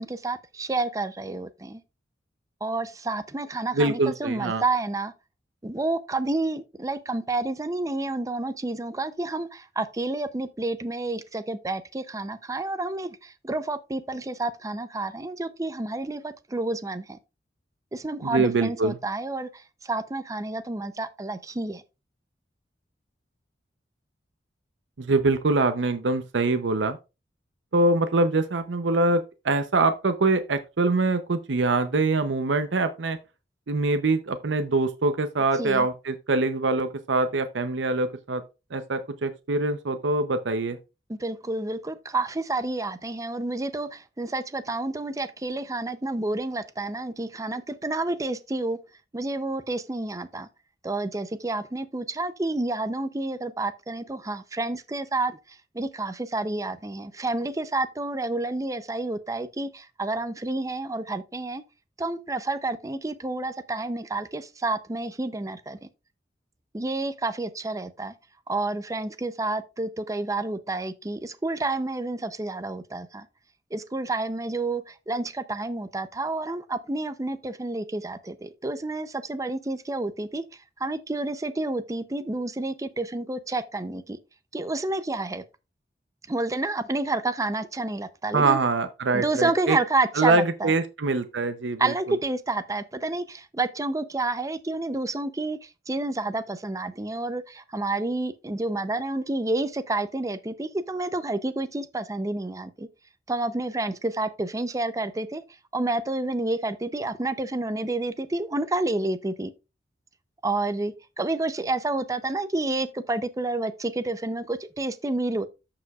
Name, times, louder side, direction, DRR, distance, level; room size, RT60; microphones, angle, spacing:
voice 1, 0.0-1.8 2.6-5.1 5.6-17.2 17.9-21.8 35.6-35.9 41.1-48.8 49.1-50.5 50.8-61.6 62.0-65.9 66.7-68.1 68.5-73.3 73.7-80.4 80.8-84.2 84.5-85.4 86.3-88.6 89.1-90.7 91.8-102.9 103.3-105.4 105.7-109.5 110.4-115.5, right 2 dB, 20° right, 0.6 m, -29 dB
voice 2, 3.7-4.6 18.2-19.0 25.0-27.0 27.7-33.2 33.7-38.4 38.7-40.8 88.3-89.8 90.2-91.9, right 3 dB, 85° right, 0.7 m, -24 dB
14.0 x 4.9 x 2.4 m
head